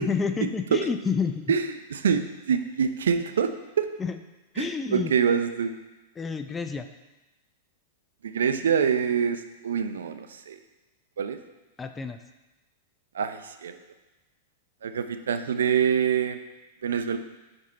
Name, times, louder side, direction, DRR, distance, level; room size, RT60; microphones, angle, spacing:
voice 1, 0.0-1.5 4.0-4.2 4.5-5.1 6.2-6.9 11.8-12.2, left 5 dB, 15° left, 7 dB, 0.4 m, -29 dB
voice 2, 1.5-3.9 4.6-5.7 8.2-10.6 11.2-11.4 13.1-13.8 14.8-16.4 16.8-17.2, right 7 dB, 85° right, 9 dB, 0.5 m, -25 dB
5.5 x 5.2 x 4.1 m, 1.1 s
hypercardioid pair, 115°, 0 cm